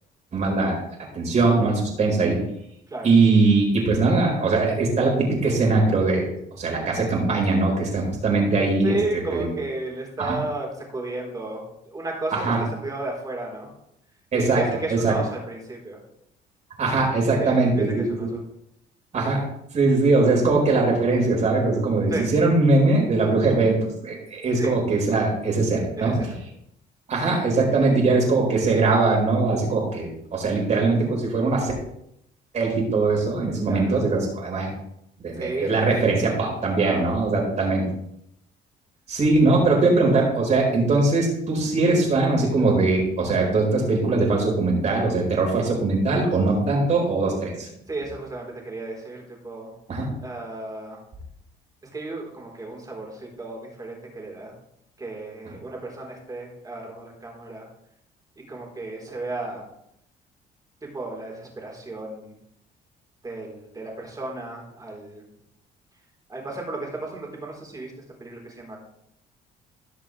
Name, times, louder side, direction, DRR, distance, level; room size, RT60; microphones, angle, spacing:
voice 1, 0.3-0.8 1.1-2.4 3.0-6.3 6.6-8.9 9.3-9.5 10.2-10.4 12.3-12.6 14.3-14.6 15.0-15.1 16.8-18.3 19.1-19.4 19.7-26.3 27.1-31.7 32.5-34.7 35.2-37.8 39.1-47.7 49.9-50.1, right 3 dB, 45° right, -1 dB, 4.6 m, -21 dB
voice 2, 8.8-12.5 12.8-13.7 14.3-16.0 17.4-18.3 22.1-22.2 24.6-24.7 26.0-26.3 33.7-34.0 35.4-35.9 36.8-37.1 47.9-49.7 50.2-51.0 51.9-54.5 55.0-57.7 58.5-59.6 60.9-62.3 63.2-65.2 66.3-67.9 68.2-68.8, right 2 dB, 20° right, -1 dB, 3.9 m, -33 dB
18.0 x 6.1 x 3.3 m, 0.78 s
cardioid pair, 110°, 17 cm